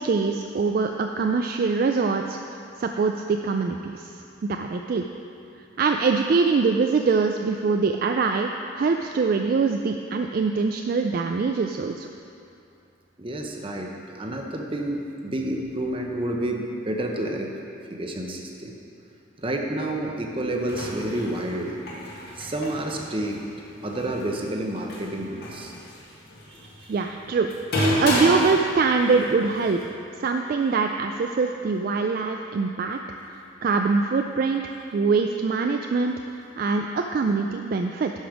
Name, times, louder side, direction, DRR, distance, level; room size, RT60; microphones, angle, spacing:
voice 1, 0.0-2.4 2.8-4.1 4.4-5.0 5.8-8.5 8.8-12.1 26.9-27.5 28.0-29.8 30.2-33.0 33.3-38.1, right 4 dB, 45° right, 4 dB, 0.3 m, -23 dB
voice 2, 13.2-17.5 17.9-18.8 19.4-21.8 22.4-23.4 23.8-25.7 26.5-27.0, right 1 dB, 25° right, 1 dB, 0.8 m, -30 dB
sound 1, 20.5-29.8, equal, 55° left, 1.7 m, -31 dB
12.0 x 5.1 x 5.1 m, 2.6 s
head